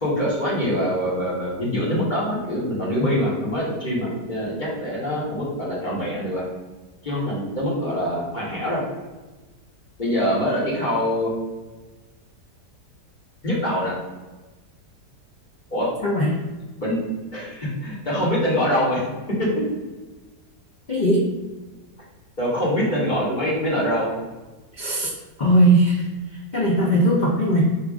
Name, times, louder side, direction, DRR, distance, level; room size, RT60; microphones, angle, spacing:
voice 1, 0.0-6.4 7.0-8.8 10.0-11.3 13.4-13.9 15.7-15.9 16.8-17.0 17.3-19.0 19.4-19.6 22.4-24.1, equal, 30° left, -6 dB, 1.4 m, -24 dB
voice 2, 16.0-16.4 20.9-21.3 24.7-25.1 25.4-26.1 26.5-27.6, right 1 dB, 85° left, -4 dB, 0.4 m, -19 dB
3.5 x 3.0 x 4.7 m, 1.2 s
omnidirectional pair, 1.8 m